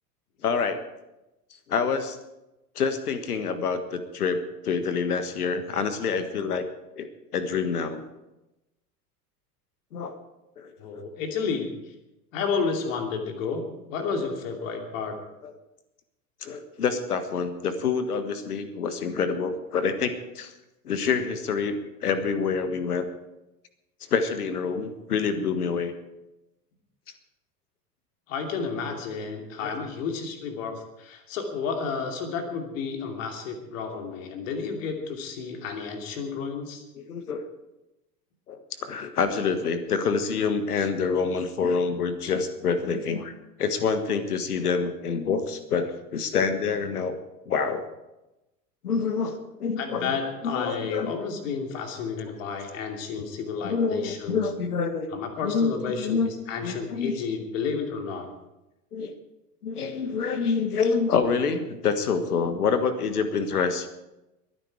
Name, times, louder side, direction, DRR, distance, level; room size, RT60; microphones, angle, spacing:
voice 1, 0.4-0.8 1.7-2.2 2.7-6.7 7.0-8.1 9.9-10.2 10.6-11.0 15.4-15.5 16.4-20.5 20.8-23.1 24.1-25.9 29.6-29.7 36.9-37.5 38.5-43.3 43.6-47.2 47.5-47.9 48.8-50.1 50.4-51.1 53.6-55.1 55.4-56.3 56.6-57.2 58.9-59.2 59.6-63.9, left 5 dB, 65° left, 10 dB, 1.6 m, -27 dB
voice 2, 10.8-11.7 12.3-15.2 28.3-36.8 49.8-54.5 55.1-58.3, left 5 dB, 50° left, 4 dB, 2.9 m, -31 dB
22.0 x 10.0 x 4.8 m, 0.95 s
figure-of-eight pair, 85°, 48 cm